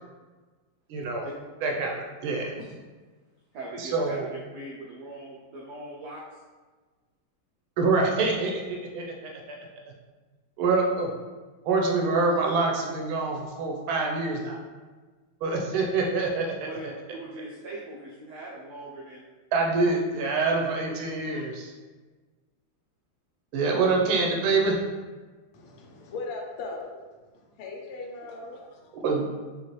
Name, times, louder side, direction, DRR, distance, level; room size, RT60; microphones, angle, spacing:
voice 1, 0.9-1.3 1.6-1.9 2.2-2.5 3.8-4.3 7.8-9.6 10.6-11.1 11.6-14.6 15.4-16.7 19.5-21.7 23.5-24.8 29.0-29.3, right 3 dB, 85° right, 0 dB, 1.5 m, -25 dB
voice 2, 3.5-4.2 4.5-6.4 16.7-16.8 17.1-19.3 19.9-20.0 20.8-20.9 21.3-21.4, right 2 dB, 65° right, -5 dB, 1.0 m, -41 dB
voice 3, 25.5-27.0 27.3-29.0, left 3 dB, 85° left, 0 dB, 1.6 m, -39 dB
5.4 x 2.6 x 3.1 m, 1.3 s
omnidirectional pair, 2.3 m